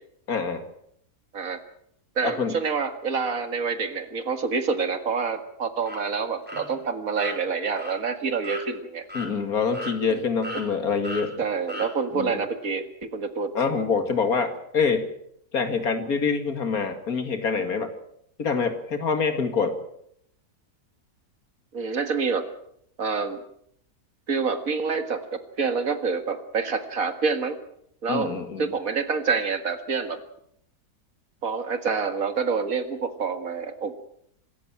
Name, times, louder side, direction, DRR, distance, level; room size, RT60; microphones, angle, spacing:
voice 1, 0.3-0.6 2.2-2.6 9.1-11.4 12.1-12.4 13.5-15.1 15.5-17.9 18.4-19.8 28.1-28.7, left 5 dB, 70° left, 8 dB, 2.7 m, -25 dB
voice 2, 2.2-9.0 10.1-10.2 11.4-13.5 21.7-22.5 23.0-23.4 24.3-27.6 28.0-28.3 28.6-30.2 31.4-33.9, right 5 dB, 60° right, 9 dB, 2.2 m, -27 dB
sound 1, 5.8-6.0 6.5-6.6 7.1-7.4 7.8-7.9 8.4-8.7 9.1-9.3 9.7-10.2 10.4-10.7 11.0-11.3 11.7-11.9, left 1 dB, 5° right, 4.4 m, -36 dB
25.5 x 13.5 x 8.8 m, 0.72 s
omnidirectional pair, 1.6 m